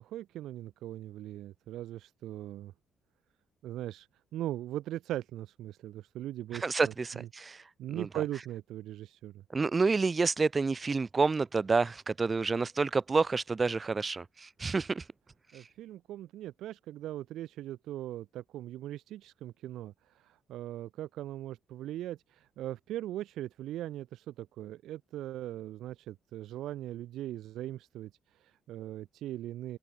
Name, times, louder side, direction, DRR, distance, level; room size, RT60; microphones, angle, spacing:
voice 1, 0.0-2.7 3.6-9.4 15.5-29.8, right 13 dB, 85° right, 6.5 m, -40 dB
voice 2, 6.6-7.6 8.0-8.1 9.5-15.0, right 4 dB, 30° right, 1.8 m, -29 dB
open air
cardioid pair, 90°, 0 cm